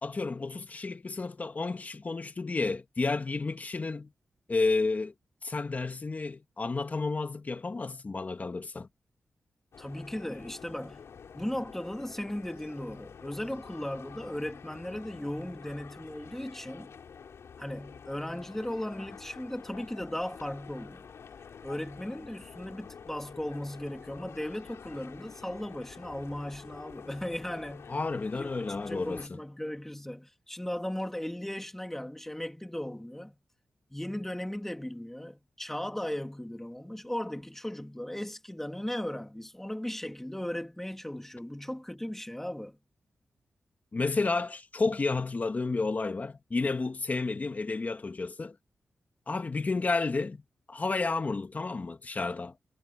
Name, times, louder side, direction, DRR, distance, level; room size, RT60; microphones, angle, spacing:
voice 1, 0.0-4.1 4.5-5.1 5.4-8.9 27.9-29.4 43.9-48.5 49.3-50.4 50.7-52.5, left 3 dB, 35° left, 1.6 m, -31 dB
sound 1, 9.7-29.3, left 6 dB, 80° left, 4.0 m, -48 dB
voice 2, 9.8-11.1 11.3-16.9 17.6-21.1 21.6-28.0 28.3-33.4 33.9-42.8, left 1 dB, 5° left, 2.5 m, -37 dB
wide cardioid pair, 110°, 5 cm